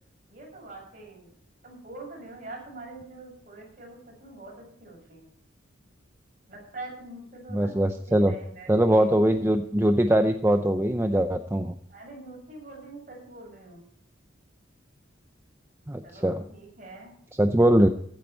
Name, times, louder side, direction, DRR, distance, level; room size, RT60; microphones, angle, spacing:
voice 1, 0.3-1.3 1.6-5.3 6.5-9.2 11.9-13.9 16.0-17.1, right 2 dB, 40° right, -1 dB, 7.1 m, -44 dB
voice 2, 7.5-8.3 8.7-11.7 15.9-16.4 17.4-17.9, right 1 dB, 15° right, 7 dB, 0.6 m, -22 dB
15.5 x 9.7 x 4.4 m, 0.66 s
head